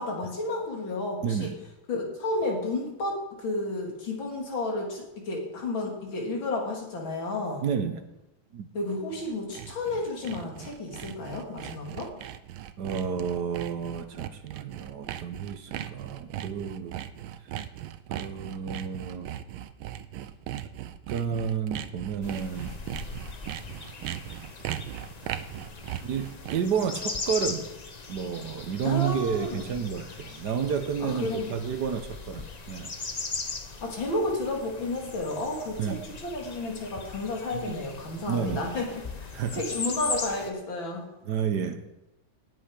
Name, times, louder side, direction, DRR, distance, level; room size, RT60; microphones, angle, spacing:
voice 1, 0.0-1.5 1.9-7.6 8.7-12.1 28.8-29.7 31.0-31.5 33.8-41.1, left 2 dB, 75° left, 3.5 m, -32 dB
voice 2, 1.2-1.5 7.6-8.0 8.5-8.7 12.8-17.0 18.1-19.3 21.1-22.8 26.0-27.7 28.1-32.9 35.8-36.0 37.5-37.7 38.3-38.7 39.3-39.6 41.2-41.9, right 7 dB, 65° right, 1.3 m, -30 dB
Sawing, 9.0-26.8, right 11 dB, 85° right, 1.5 m, -38 dB
sound 1, 22.2-40.5, left 4 dB, 40° left, 0.6 m, -39 dB
18.5 x 8.4 x 5.1 m
omnidirectional pair, 2.2 m